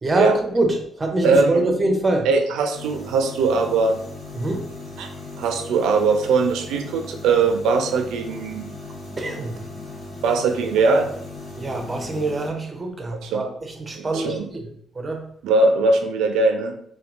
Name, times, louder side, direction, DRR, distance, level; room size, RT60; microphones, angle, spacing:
voice 1, 0.0-2.3 4.3-4.6 9.2-9.6 11.6-14.7 14.9-15.3, right 2 dB, 30° right, 4 dB, 0.5 m, -24 dB
voice 2, 1.2-1.6 2.3-4.0 5.0-5.1 5.4-8.7 10.2-11.1 13.2-13.4 14.0-14.5 15.4-16.7, right 4 dB, 85° right, 6 dB, 0.3 m, -20 dB
sound 1, 2.7-12.5, left 2 dB, 30° left, 1.2 m, -37 dB
2.8 x 2.2 x 2.4 m, 0.67 s
cardioid pair, 90°, 0 cm